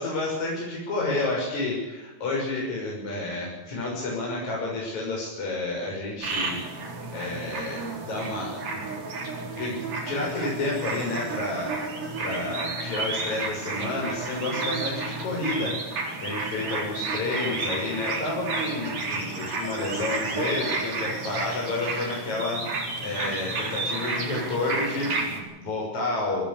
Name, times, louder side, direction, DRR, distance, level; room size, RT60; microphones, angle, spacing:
voice 1, 0.0-6.6 7.1-8.8 9.6-11.7 12.2-26.4, left 2 dB, 65° left, -3 dB, 7.7 m, -30 dB
sound 1, 6.2-25.4, right 3 dB, 80° right, 5.7 m, -31 dB
24.5 x 17.0 x 6.9 m, 1.1 s
omnidirectional pair, 3.6 m